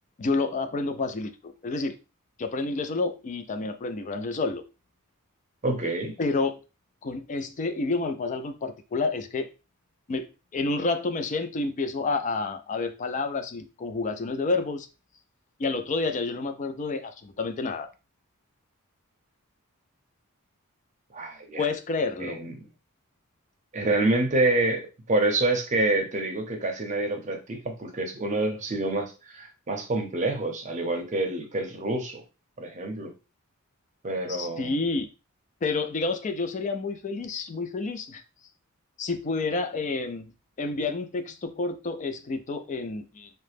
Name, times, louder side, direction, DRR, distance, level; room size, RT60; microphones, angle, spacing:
voice 1, 0.2-2.0 2.4-4.6 6.2-6.6 7.0-9.5 10.1-14.9 15.6-17.9 21.6-22.4 34.3-35.1 35.6-38.2 39.0-40.3 40.6-43.3, left 3 dB, 35° left, 8 dB, 0.4 m, -29 dB
voice 2, 5.6-6.1 21.1-21.7 22.2-22.6 23.7-32.2 32.6-33.1 34.0-34.8, right 2 dB, 35° right, 4 dB, 0.6 m, -27 dB
2.8 x 2.0 x 3.3 m, 0.30 s
head